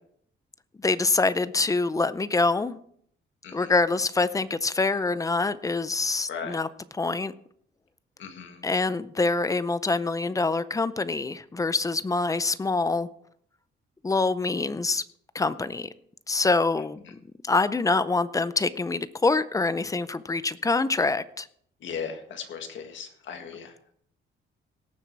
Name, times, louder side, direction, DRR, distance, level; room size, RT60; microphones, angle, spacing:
voice 1, 0.8-2.8 3.5-6.7 6.9-7.3 8.6-13.1 14.0-15.0 15.3-15.9 16.3-17.2 17.5-21.5, left 3 dB, 15° left, 15 dB, 0.5 m, -25 dB
voice 2, 6.3-6.6 8.2-8.6 17.0-17.1 21.8-23.9, left 6 dB, 65° left, 6 dB, 1.8 m, -37 dB
18.0 x 7.2 x 4.7 m, 0.66 s
cardioid pair, 145°, 21 cm